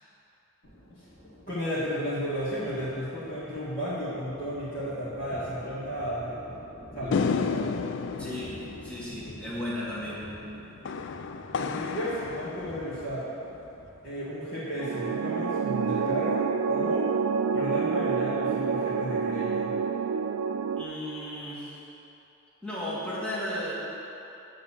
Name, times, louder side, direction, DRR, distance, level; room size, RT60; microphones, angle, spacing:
Thunder, 0.6-15.4, equal, 80° left, 1.8 m, -49 dB
voice 1, 1.5-6.5 6.9-7.8 11.5-13.3 14.0-17.0 17.5-19.7, equal, 40° left, -14 dB, 1.9 m, -33 dB
sound 1, 7.1-13.6, left 5 dB, 60° left, 0.3 m, -33 dB
voice 2, 8.2-8.6 8.8-10.4 20.8-21.8 22.6-23.7, left 1 dB, 5° left, -9 dB, 1.6 m, -34 dB
sound 2, 14.8-20.8, right 5 dB, 80° right, 0.4 m, -28 dB
9.2 x 3.9 x 7.2 m, 3.0 s
head